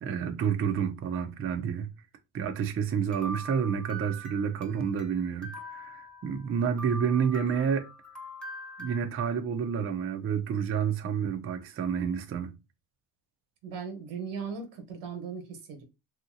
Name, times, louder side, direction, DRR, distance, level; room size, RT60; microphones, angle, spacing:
voice 1, 0.0-1.9 2.3-7.9 8.8-12.6, right 7 dB, 30° right, 0.4 m, -29 dB
sound 1, 3.1-5.1 5.4-6.5 6.8-9.1, right 1 dB, ahead, 0.8 m, -42 dB
voice 2, 13.6-15.8, right 6 dB, 90° right, 1.2 m, -38 dB
2.8 x 2.7 x 2.5 m
cardioid pair, 100°, 50 cm